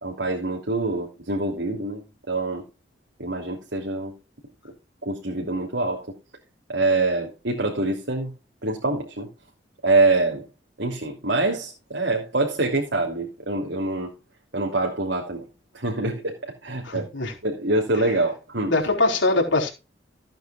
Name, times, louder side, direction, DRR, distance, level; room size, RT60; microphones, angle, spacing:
voice 1, 0.0-2.6 3.2-4.1 5.0-6.1 6.7-8.3 8.6-9.3 9.8-10.5 10.8-14.1 14.5-15.5 15.7-16.4 16.6-17.1 17.4-18.7, right 2 dB, 80° right, 3.0 m, -25 dB
voice 2, 16.8-17.3 18.0-18.1 18.7-19.7, left 2 dB, 90° left, 4.3 m, -22 dB
16.0 x 9.0 x 2.4 m
head